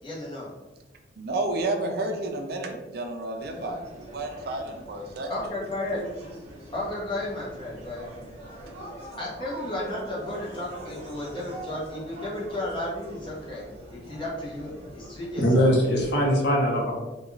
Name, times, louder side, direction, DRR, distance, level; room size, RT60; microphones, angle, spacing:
voice 1, 0.0-0.5 5.3-6.0 6.7-8.1 9.2-15.7, left 1 dB, 30° left, -5 dB, 0.7 m, -33 dB
voice 2, 1.2-5.3, right 2 dB, 60° right, 4 dB, 0.4 m, -31 dB
sound 1, 3.4-16.4, right 1 dB, 40° right, 0.7 m, -43 dB
voice 3, 15.4-16.9, equal, 70° left, -2 dB, 0.7 m, -21 dB
2.4 x 2.3 x 3.1 m, 1.1 s
head